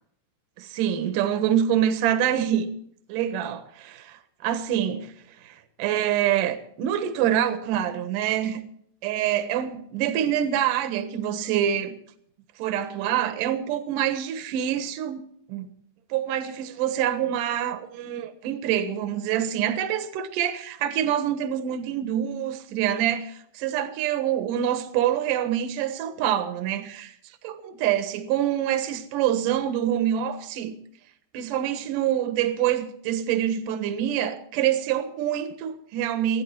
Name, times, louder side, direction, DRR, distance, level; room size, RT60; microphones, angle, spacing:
voice 1, 0.6-2.7 3.1-5.1 5.4-8.6 9.0-12.0 12.6-15.2 15.5-15.7 16.1-27.1 27.4-30.7 31.3-36.4, right 10 dB, 65° right, 2.2 m, -26 dB
25.0 x 9.9 x 4.5 m
omnidirectional pair, 5.5 m